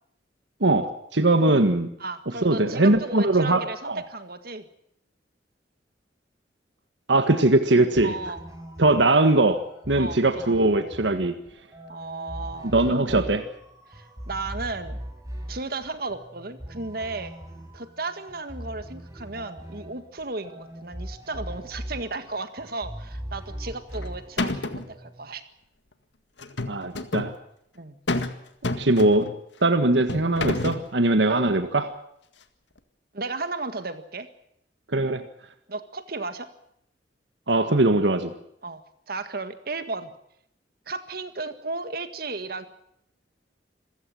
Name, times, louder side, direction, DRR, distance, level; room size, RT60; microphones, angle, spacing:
voice 1, 0.6-1.9 2.4-4.0 7.1-8.1 8.8-11.3 12.6-13.4 26.7-27.3 28.8-29.3 29.6-31.9 34.9-35.2 37.5-38.3, right 2 dB, 85° right, 8 dB, 1.7 m, -21 dB
voice 2, 2.0-4.7 8.0-8.4 9.9-10.6 11.9-13.2 13.9-15.0 15.5-17.3 17.7-25.5 27.8-28.0 33.1-34.3 35.7-36.5 38.6-38.8 39.1-40.1 40.9-42.7, right 3 dB, 55° right, 10 dB, 1.7 m, -34 dB
sound 1, 7.9-25.2, equal, 20° right, 7.1 m, -40 dB
sound 2, 23.7-24.1 24.4-24.9 26.4-27.3 28.1-28.4 28.6-29.4 30.1-30.9, left 2 dB, 85° left, 1.9 m, -28 dB
27.0 x 16.0 x 7.8 m, 0.73 s
head